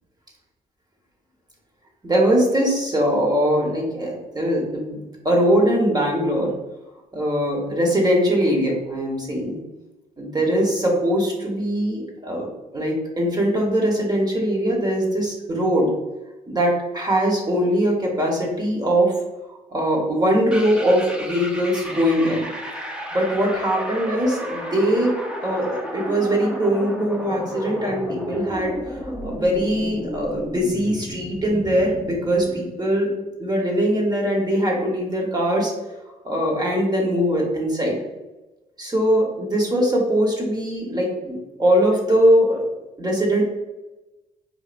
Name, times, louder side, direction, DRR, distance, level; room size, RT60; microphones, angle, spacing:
voice 1, 2.0-6.5 7.1-9.6 10.2-15.9 16.5-19.1 19.7-22.5 23.1-33.1 33.4-35.7 36.2-38.0 38.8-42.7 43.0-43.4, equal, 25° right, -1 dB, 1.2 m, -21 dB
sound 1, 20.5-32.6, equal, 5° right, 0.9 m, -33 dB
4.2 x 2.6 x 2.5 m, 1.1 s
supercardioid pair, 70°, 17 cm